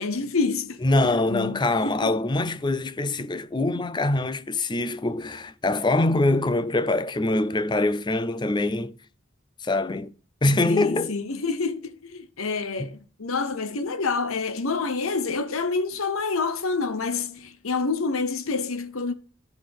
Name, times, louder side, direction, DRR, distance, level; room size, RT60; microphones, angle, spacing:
voice 1, 0.0-0.8 1.1-2.1 10.7-19.1, left 4 dB, 80° left, 1.0 m, -28 dB
voice 2, 0.8-8.9 9.6-10.1 10.4-11.1 12.8-12.9, left 2 dB, 20° left, 0.4 m, -24 dB
12.5 x 5.6 x 5.2 m
head